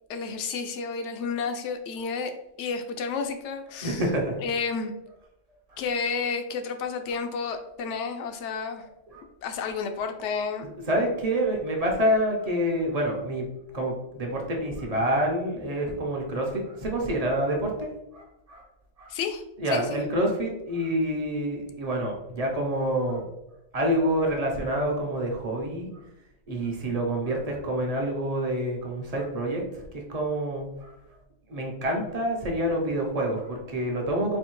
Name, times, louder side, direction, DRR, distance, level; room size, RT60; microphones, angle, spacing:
voice 1, 0.1-2.3 2.6-4.0 4.4-4.9 5.8-8.9 9.4-10.6 19.1-19.4 19.7-20.0, left 5 dB, 75° left, 6 dB, 0.8 m, -31 dB
voice 2, 3.8-4.4 5.7-5.8 9.1-9.2 10.9-13.5 13.7-18.6 19.0-19.1 19.6-23.3 23.7-25.9 26.5-30.9 31.5-34.4, right 1 dB, 40° right, 1 dB, 0.7 m, -27 dB
4.2 x 2.7 x 3.0 m, 0.87 s
omnidirectional pair, 1.3 m